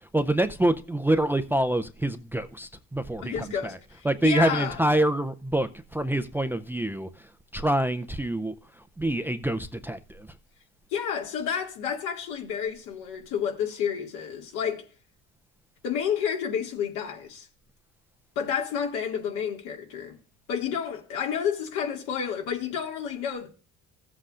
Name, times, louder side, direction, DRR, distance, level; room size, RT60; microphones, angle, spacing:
voice 1, 0.0-3.8 4.0-8.5 9.0-10.3, right 1 dB, 5° right, 0.4 m, -26 dB
voice 2, 3.2-4.8 10.9-14.8 15.8-17.5 18.4-20.2 20.5-23.5, left 8 dB, 80° left, 2.4 m, -30 dB
15.0 x 7.6 x 2.5 m
supercardioid pair, 100°, 33 cm